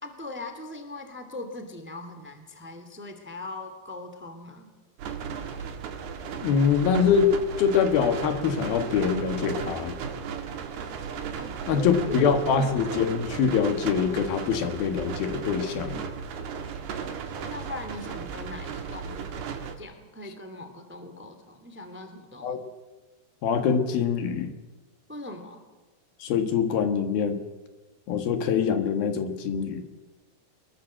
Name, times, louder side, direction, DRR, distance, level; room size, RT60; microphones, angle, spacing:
voice 1, 0.0-4.7 11.4-12.4 17.4-19.4 19.8-22.6 25.1-25.7, left 2 dB, 5° right, 7 dB, 2.0 m, -40 dB
sound 1, 5.0-19.7, right 6 dB, 90° right, 4.0 m, -35 dB
voice 2, 6.4-10.0 11.7-16.1 22.4-22.6 23.4-24.5 26.2-27.4 28.1-29.8, left 7 dB, 75° left, 7 dB, 3.3 m, -24 dB
24.0 x 21.0 x 7.7 m, 1.2 s
omnidirectional pair, 4.4 m